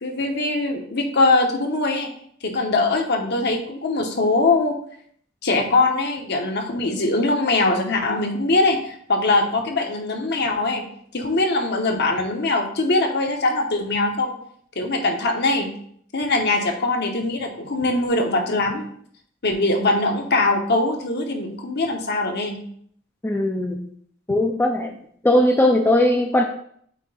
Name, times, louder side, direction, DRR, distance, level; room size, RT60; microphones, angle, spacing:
voice 1, 0.0-2.1 2.4-4.8 5.4-10.8 11.1-14.3 14.8-15.7 16.1-18.8 19.4-22.6, left 2 dB, 55° left, 3 dB, 1.0 m, -22 dB
voice 2, 23.2-23.9 24.3-24.9 25.2-26.4, left 1 dB, 10° left, 1 dB, 0.5 m, -19 dB
8.2 x 2.8 x 4.1 m, 0.63 s
head